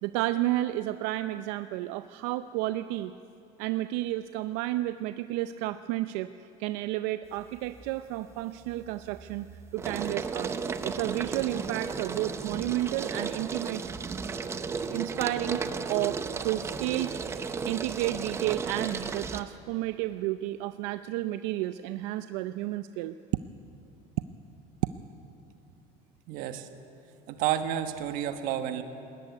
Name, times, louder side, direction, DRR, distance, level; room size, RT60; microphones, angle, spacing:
voice 1, 0.0-3.1 3.6-6.3 6.6-9.5 9.7-10.5 10.8-13.8 14.9-15.6 15.9-17.2 17.7-23.2, right 15 dB, 90° right, 12 dB, 0.6 m, -31 dB
sound 1, 7.4-7.9 8.3-19.4, right 5 dB, 15° right, 0.6 m, -35 dB
voice 2, 26.3-26.7 27.3-28.8, right 10 dB, 60° right, 9 dB, 1.5 m, -30 dB
21.0 x 18.0 x 9.4 m, 2.8 s
cardioid pair, 175°, 16 cm